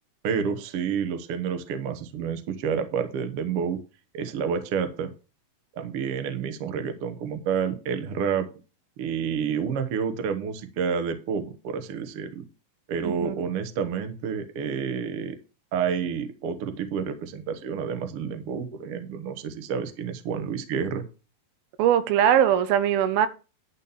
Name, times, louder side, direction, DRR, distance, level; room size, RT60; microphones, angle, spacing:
voice 1, 0.2-3.8 4.1-5.1 5.7-8.5 9.0-12.5 12.9-15.4 15.7-21.0, right 6 dB, 65° right, 1.4 m, -29 dB
voice 2, 13.0-13.4 21.8-23.3, right 10 dB, 85° right, 2.7 m, -21 dB
11.0 x 4.2 x 7.0 m
omnidirectional pair, 4.2 m